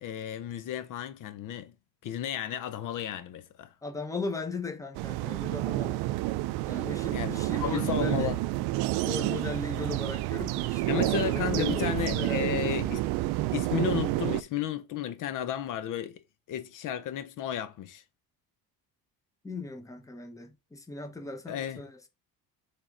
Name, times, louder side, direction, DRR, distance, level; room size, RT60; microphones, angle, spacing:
voice 1, 0.0-1.7 2.0-3.7 7.1-8.4 10.9-13.0 13.5-16.2 16.5-18.0 21.5-21.8, left 10 dB, 55° left, 0.7 m, -33 dB
voice 2, 3.8-6.0 6.7-8.3 9.0-12.7 19.4-22.1, left 2 dB, 10° left, 1.0 m, -38 dB
sound 1, 4.9-14.4, right 18 dB, 85° right, 0.5 m, -29 dB
6.9 x 3.6 x 3.8 m
cardioid pair, 145°, 37 cm